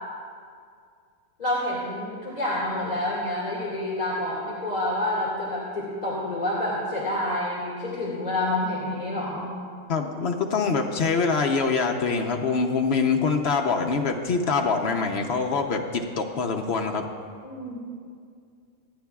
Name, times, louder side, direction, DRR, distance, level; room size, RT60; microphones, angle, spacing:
voice 1, 1.4-9.5 17.4-17.8, left 1 dB, 30° left, -7 dB, 2.2 m, -28 dB
voice 2, 9.9-17.1, left 4 dB, 55° left, 3 dB, 0.9 m, -24 dB
26.0 x 9.6 x 2.3 m, 2.2 s
omnidirectional pair, 1.5 m